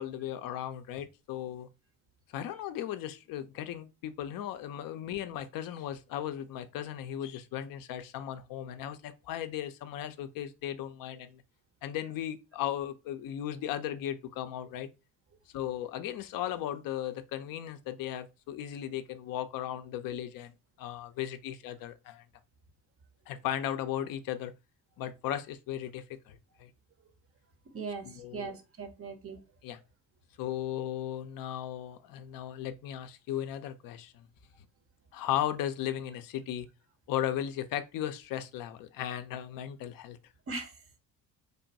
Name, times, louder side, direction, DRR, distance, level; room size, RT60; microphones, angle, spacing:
voice 1, 0.0-1.7 2.3-11.4 11.8-14.9 15.5-22.2 23.3-24.5 25.0-26.7 28.0-28.5 29.6-29.8 30.4-34.3 35.1-36.7 37.1-40.2, left 11 dB, 45° left, 0.5 m, -36 dB
voice 2, 27.7-28.1 28.3-29.4 40.5-40.7, right 4 dB, 30° right, 0.7 m, -38 dB
3.3 x 2.2 x 2.6 m
hypercardioid pair, 50°, 48 cm